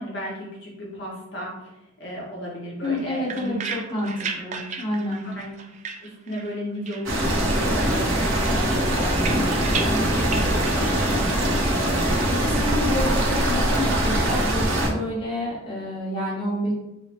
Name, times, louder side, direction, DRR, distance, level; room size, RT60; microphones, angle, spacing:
voice 1, 0.0-1.7 2.0-3.6 5.2-5.5 6.0-12.0, equal, 60° left, -3 dB, 1.0 m, -35 dB
voice 2, 2.8-5.2 12.3-16.7, left 1 dB, 25° left, -6 dB, 1.1 m, -29 dB
sound 1, 2.8-6.6 6.9-7.7 8.0-11.3, right 5 dB, 35° right, 0.3 m, -35 dB
sound 2, 7.1-14.9, right 1 dB, 75° right, 0.8 m, -22 dB
5.6 x 2.1 x 2.9 m, 0.89 s
head